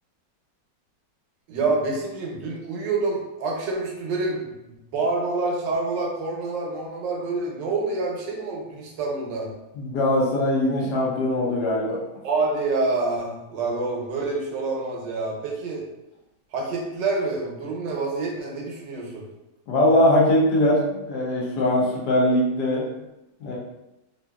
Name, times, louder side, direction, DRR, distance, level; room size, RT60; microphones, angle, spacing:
voice 1, 1.5-9.5 12.2-15.8 16.5-19.2, right 3 dB, 80° right, -1 dB, 1.3 m, -27 dB
voice 2, 9.7-12.0 19.7-22.9 23.4-23.6, left 1 dB, 70° left, -3 dB, 1.3 m, -21 dB
3.4 x 2.7 x 2.2 m, 0.96 s
omnidirectional pair, 1.9 m